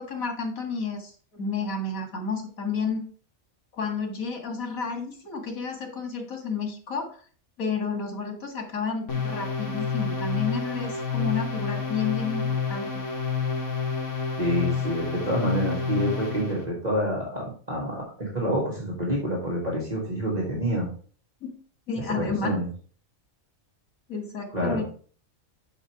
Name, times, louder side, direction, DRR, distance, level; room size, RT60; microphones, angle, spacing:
voice 1, 0.0-3.0 3.7-7.1 7.6-12.9 21.4-21.5 21.9-22.5 24.1-24.8, left 5 dB, 85° left, 4 dB, 2.2 m, -31 dB
sound 1, 9.1-16.6, left 5 dB, 60° left, 1.9 m, -29 dB
voice 2, 14.4-20.9 22.1-22.7 24.5-24.8, equal, 30° right, -5 dB, 2.0 m, -27 dB
6.3 x 5.4 x 4.7 m, 0.43 s
omnidirectional pair, 1.4 m